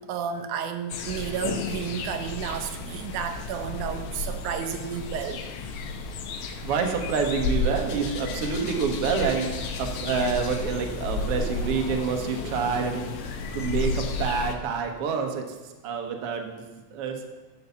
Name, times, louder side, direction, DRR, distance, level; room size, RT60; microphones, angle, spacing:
voice 1, 0.0-5.4, right 8 dB, 85° right, 7 dB, 2.2 m, -32 dB
sound 1, 0.9-14.5, left 3 dB, 65° left, 1.6 m, -32 dB
voice 2, 6.6-17.3, right 5 dB, 60° right, 3 dB, 1.9 m, -28 dB
11.5 x 5.5 x 7.0 m, 1.2 s
omnidirectional pair, 3.4 m